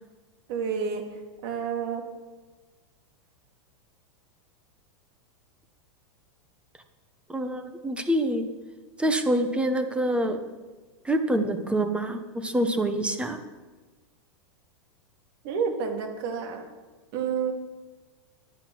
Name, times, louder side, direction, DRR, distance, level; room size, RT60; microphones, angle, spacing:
voice 1, 0.5-1.0 1.4-2.0 15.4-16.6 17.1-17.5, right 6 dB, 55° right, 3 dB, 2.4 m, -29 dB
voice 2, 7.3-8.5 9.0-10.4 11.0-13.4, right 1 dB, 5° right, 7 dB, 1.1 m, -26 dB
10.5 x 9.2 x 6.1 m, 1.3 s
supercardioid pair, 130°, 15 cm